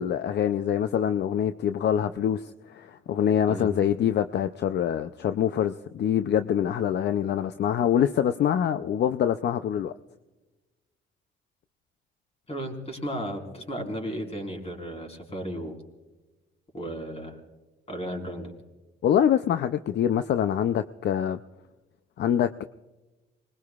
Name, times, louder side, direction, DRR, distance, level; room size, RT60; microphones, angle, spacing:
voice 1, 0.0-9.9 19.0-21.4 22.2-22.6, left 9 dB, 60° left, 0.5 m, -25 dB
voice 2, 12.5-15.8 16.7-17.4 17.9-18.5, equal, 30° left, 4.5 m, -34 dB
25.5 x 21.0 x 2.4 m
cardioid pair, 90°, 20 cm